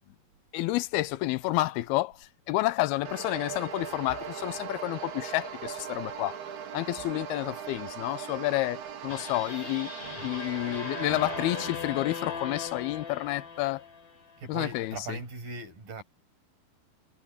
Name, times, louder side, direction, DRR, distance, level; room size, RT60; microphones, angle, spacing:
voice 1, 0.5-6.4 6.7-9.9 10.2-13.9 14.5-15.2, left 17 dB, 90° left, 2.7 m, -30 dB
sound 1, 3.1-11.7, right 7 dB, 85° right, 4.5 m, -39 dB
sound 2, 9.1-14.4, left 5 dB, 40° left, 4.0 m, -39 dB
voice 2, 14.4-16.0, right 3 dB, 60° right, 8.5 m, -39 dB
omnidirectional pair, 4.4 m